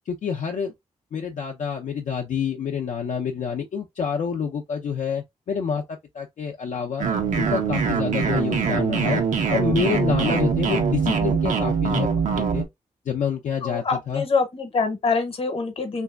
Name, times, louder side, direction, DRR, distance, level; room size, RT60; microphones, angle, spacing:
voice 1, 0.1-0.7 1.1-7.1 7.4-9.2 9.5-12.1 12.3-12.7 13.1-14.3, left 6 dB, 70° left, 0.5 m, -27 dB
sound 1, 7.0-12.6, right 6 dB, 85° right, 0.7 m, -23 dB
voice 2, 13.6-16.0, left 4 dB, 50° left, 0.9 m, -25 dB
3.2 x 2.6 x 2.3 m
wide cardioid pair, 155°, 13 cm